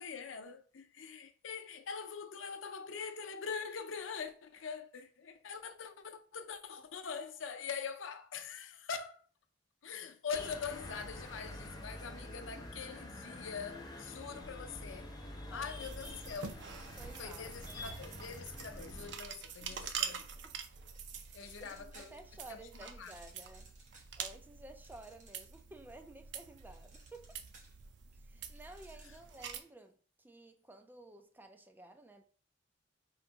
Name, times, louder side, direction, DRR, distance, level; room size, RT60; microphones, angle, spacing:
voice 1, 0.0-9.2 9.8-15.1 15.5-16.6 17.2-20.3 21.3-22.1 22.5-23.1, left 6 dB, 90° left, 0.5 m, -43 dB
sound 1, 10.3-19.1, left 1 dB, 20° left, 0.8 m, -47 dB
voice 2, 15.5-16.0 17.0-18.0 19.5-20.5 21.2-23.7 24.2-27.4 28.2-32.2, right 2 dB, 10° right, 0.4 m, -54 dB
sound 2, 15.8-29.6, right 7 dB, 65° right, 0.5 m, -46 dB
sound 3, 19.4-20.4 20.9-22.3 22.8-25.8 26.1-29.7, right 3 dB, 40° right, 1.1 m, -61 dB
3.8 x 2.6 x 4.6 m
head